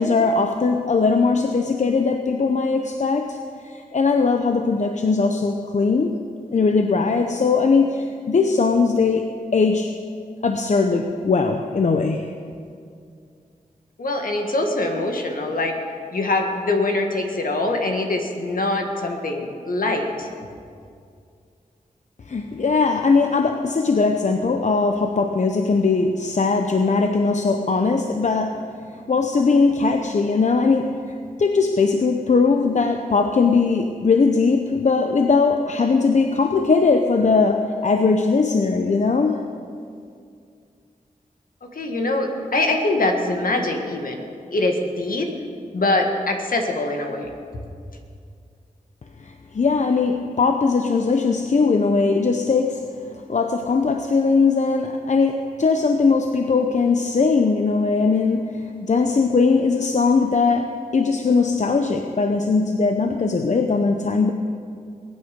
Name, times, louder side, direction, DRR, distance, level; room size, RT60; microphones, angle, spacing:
voice 1, 0.0-3.4 3.6-6.2 6.5-9.9 10.4-12.3 22.3-28.6 29.1-39.5 49.2-52.8 53.3-64.3, left 4 dB, 55° left, 5 dB, 0.7 m, -20 dB
voice 2, 14.0-15.8 16.1-20.3 41.7-44.2 44.5-45.3 45.7-47.3, left 2 dB, 70° left, 3 dB, 1.8 m, -23 dB
22.0 x 9.5 x 5.2 m, 2.3 s
wide cardioid pair, 75°, 15 cm